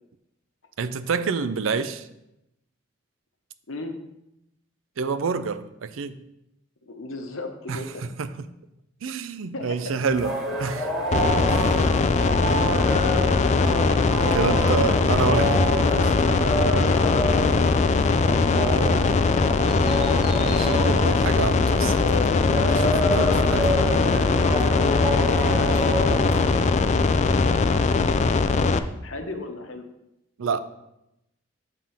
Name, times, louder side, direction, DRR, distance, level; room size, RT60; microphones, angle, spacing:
voice 1, 0.8-2.1 5.0-6.2 7.7-7.8 8.2-8.3 9.0-10.9 11.5-11.8 13.8-16.1 18.5-19.1 20.4-22.2 22.6-23.7 30.4-30.6, right 5 dB, 85° right, 12 dB, 0.5 m, -28 dB
voice 2, 6.8-8.0 9.5-9.9 25.4-26.7 29.0-29.9, left 2 dB, 85° left, 5 dB, 1.0 m, -38 dB
sound 1, 10.1-27.1, equal, ahead, 1.3 m, -29 dB
sound 2, 11.1-28.8, left 4 dB, 35° left, 0.3 m, -21 dB
7.4 x 3.7 x 5.7 m, 0.87 s
head